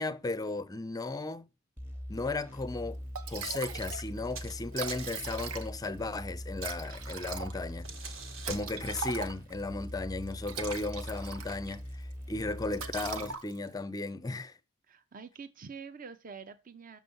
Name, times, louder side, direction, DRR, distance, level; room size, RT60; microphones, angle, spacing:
voice 1, 0.0-1.4 2.1-3.0 3.3-7.9 8.5-14.6, left 2 dB, 15° left, 0.4 m, -35 dB
sound 1, 1.8-13.3, equal, 10° right, 0.9 m, -42 dB
Liquid, 2.8-2.9 3.2-4.1 4.4-4.5 4.6-5.9 6.6-9.6 10.3-11.8 12.1-12.4 12.7-13.8, right 6 dB, 80° right, 0.9 m, -40 dB
sound 2, 4.2-4.6 4.9-5.3 7.5-9.1, right 4 dB, 60° right, 1.3 m, -45 dB
voice 2, 14.9-17.0, right 5 dB, 40° right, 0.6 m, -46 dB
6.8 x 6.3 x 5.3 m
head